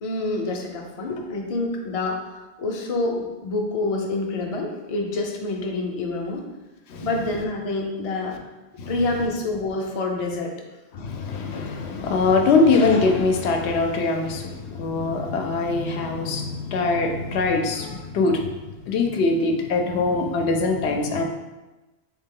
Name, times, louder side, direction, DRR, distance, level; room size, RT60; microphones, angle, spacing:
voice 1, 0.0-2.2 2.6-6.4 7.0-8.3 8.9-10.5, left 2 dB, 40° left, 1 dB, 0.5 m, -27 dB
voice 2, 10.9-18.4 18.9-21.2, left 3 dB, 80° left, 4 dB, 0.8 m, -22 dB
3.6 x 3.3 x 3.7 m, 1.1 s
omnidirectional pair, 1.1 m